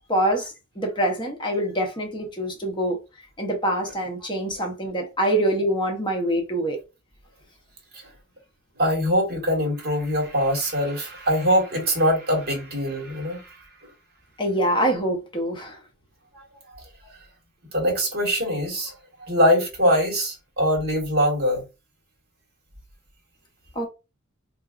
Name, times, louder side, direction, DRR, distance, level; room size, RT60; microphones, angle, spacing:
voice 1, 0.1-3.0 3.4-6.8 14.4-15.8 23.8-23.9, right 1 dB, 25° left, 0.8 m, -25 dB
voice 2, 8.8-13.6 16.3-16.4 16.7-16.8 17.7-18.9 19.2-21.6, equal, 50° right, 1.6 m, -23 dB
3.6 x 2.9 x 2.4 m
head